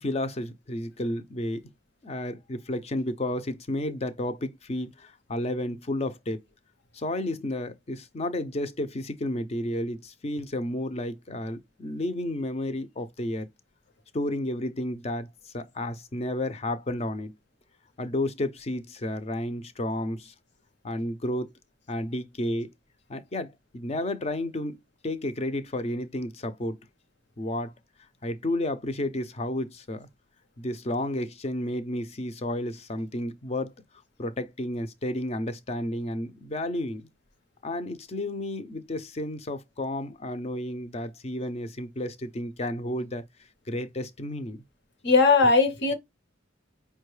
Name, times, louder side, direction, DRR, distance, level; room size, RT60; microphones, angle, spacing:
voice 1, 0.0-1.6 2.0-6.4 6.9-13.5 14.1-17.3 18.0-20.3 20.8-21.5 21.9-22.7 23.1-24.8 25.0-26.8 27.4-27.7 28.2-30.1 30.6-33.7 34.2-37.0 37.6-43.2 43.7-44.6, left 1 dB, 35° left, 0.5 m, -31 dB
voice 2, 45.0-45.9, left 4 dB, 60° left, 0.8 m, -19 dB
5.2 x 2.2 x 3.1 m
head